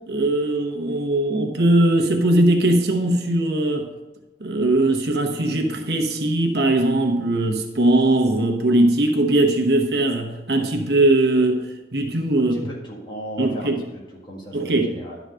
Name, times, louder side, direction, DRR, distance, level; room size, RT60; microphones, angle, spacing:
voice 1, 0.1-3.9 4.4-11.6 11.9-12.5 13.4-13.8 14.5-14.9, right 1 dB, 65° right, 3 dB, 1.0 m, -20 dB
voice 2, 12.5-15.2, right 1 dB, 25° left, -3 dB, 1.6 m, -36 dB
11.5 x 4.0 x 6.3 m, 1.1 s
head